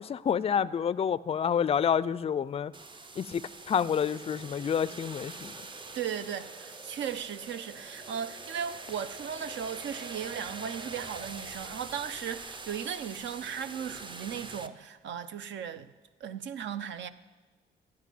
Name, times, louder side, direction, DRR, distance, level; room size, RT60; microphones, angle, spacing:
voice 1, 0.0-2.7 3.2-5.5, left 8 dB, 30° left, 0.4 m, -28 dB
sound 1, 2.7-14.7, right 3 dB, 25° right, 0.6 m, -44 dB
sound 2, 5.3-11.5, right 3 dB, 45° right, 4.1 m, -51 dB
voice 2, 5.9-15.9 16.2-17.1, right 8 dB, 70° right, 0.6 m, -37 dB
13.5 x 5.4 x 9.3 m
cardioid pair, 90°, 20 cm